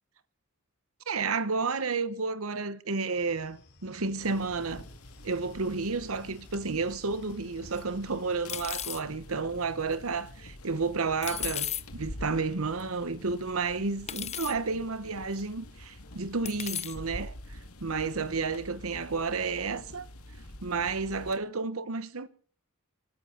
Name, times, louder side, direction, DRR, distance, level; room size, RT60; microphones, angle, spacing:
voice 1, 1.1-4.9 5.2-20.1 20.6-22.3, right 4 dB, 70° right, 1.1 m, -31 dB
sound 1, 3.1-8.6, left 1 dB, 50° left, 4.0 m, -57 dB
sound 2, 4.2-21.3, left 1 dB, 90° left, 2.3 m, -47 dB
sound 3, 7.8-7.9 8.5-9.0 11.2-11.8 12.8-12.9 14.1-14.5 15.4-15.5 16.5-17.0, left 10 dB, 30° left, 0.7 m, -34 dB
25.0 x 13.5 x 4.0 m
head